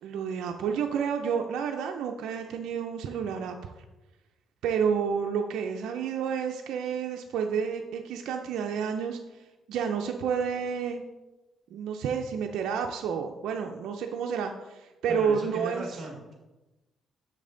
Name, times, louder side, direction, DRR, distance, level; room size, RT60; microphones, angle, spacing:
voice 1, 0.0-3.7 4.6-11.0 11.7-15.8, right 7 dB, 80° right, 3 dB, 0.4 m, -30 dB
voice 2, 15.1-16.3, right 1 dB, 35° right, 0 dB, 1.7 m, -38 dB
6.9 x 5.3 x 3.8 m, 1.1 s
cardioid pair, 90°, 0 cm